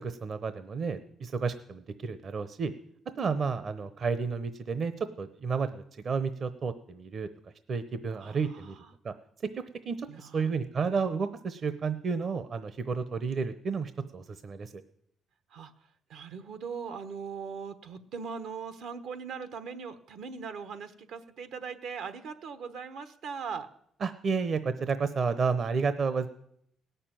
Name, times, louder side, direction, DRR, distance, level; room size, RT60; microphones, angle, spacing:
voice 1, 0.0-2.7 3.2-4.9 5.2-7.3 7.7-8.7 9.0-9.1 9.8-14.8 24.0-26.3, right 5 dB, 50° right, 12 dB, 0.8 m, -31 dB
voice 2, 8.1-8.9 10.1-10.5 15.5-15.7 16.1-23.7, right 6 dB, 80° right, 11 dB, 1.2 m, -40 dB
17.5 x 6.8 x 9.1 m, 0.71 s
cardioid pair, 90°, 0 cm